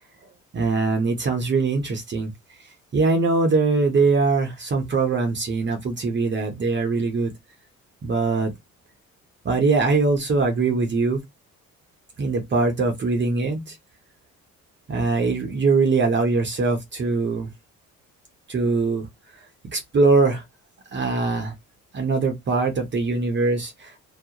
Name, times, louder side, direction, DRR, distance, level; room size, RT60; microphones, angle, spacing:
voice 1, 0.5-2.3 2.9-7.3 8.0-8.5 9.4-11.2 12.2-13.6 14.9-17.5 18.5-19.1 19.7-20.4 20.9-21.5 21.9-24.0, right 3 dB, 40° right, 0.7 m, -22 dB
2.3 x 2.0 x 2.8 m
cardioid pair, 90°, 30 cm